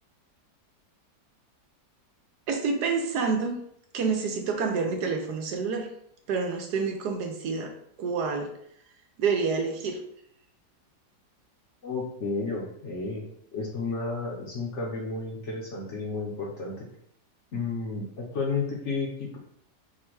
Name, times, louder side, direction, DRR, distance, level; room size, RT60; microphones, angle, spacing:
voice 1, 2.5-3.6 3.9-5.9 6.3-7.7 8.0-8.5 9.2-10.0, right 5 dB, 75° right, 3 dB, 1.2 m, -28 dB
voice 2, 11.8-13.2 13.5-16.9 17.5-19.4, left 3 dB, 55° left, -2 dB, 0.9 m, -32 dB
4.2 x 2.2 x 4.6 m, 0.69 s
omnidirectional pair, 1.8 m